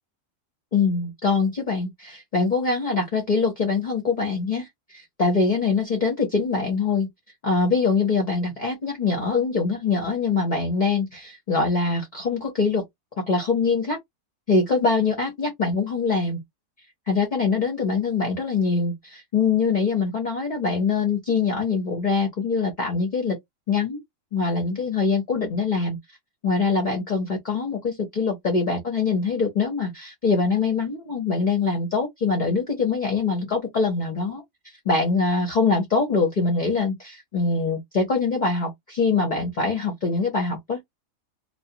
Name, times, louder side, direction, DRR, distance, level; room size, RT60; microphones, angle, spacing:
voice 1, 0.7-7.1 7.4-12.8 13.2-14.0 14.5-16.4 17.1-23.4 23.7-24.0 24.3-26.0 26.4-34.4 34.8-40.9, left 4 dB, 40° left, 0.8 m, -23 dB
2.3 x 2.2 x 2.8 m
omnidirectional pair, 1.5 m